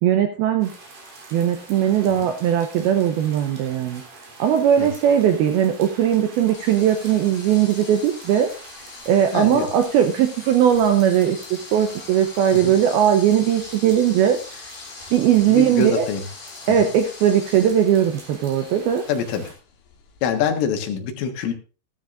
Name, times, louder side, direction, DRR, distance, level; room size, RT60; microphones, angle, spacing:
voice 1, 0.0-0.7 1.3-4.0 4.4-8.5 9.1-11.4 11.7-14.8 15.1-16.1 16.7-19.0, right 9 dB, 80° right, 6 dB, 2.2 m, -19 dB
sound 1, 0.6-19.5, right 3 dB, 50° right, 5.0 m, -44 dB
sound 2, 6.5-20.4, left 6 dB, 60° left, 3.4 m, -42 dB
voice 2, 9.3-9.7 12.5-12.7 15.5-16.3 16.7-16.9 19.1-19.5 20.2-21.5, left 6 dB, 90° left, 5 dB, 4.1 m, -25 dB
15.5 x 13.0 x 2.5 m, 0.35 s
omnidirectional pair, 5.5 m